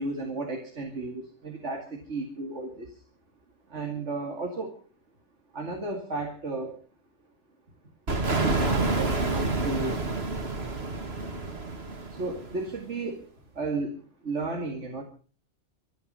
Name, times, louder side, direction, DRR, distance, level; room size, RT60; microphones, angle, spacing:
voice 1, 0.0-2.9 3.7-4.8 5.5-6.8 8.4-10.0 12.1-13.3 13.5-15.0, right 3 dB, 80° right, 3 dB, 2.7 m, -33 dB
sound 1, 8.1-12.7, right 3 dB, 60° right, 2.5 m, -28 dB
25.5 x 9.5 x 5.6 m, 0.40 s
omnidirectional pair, 1.2 m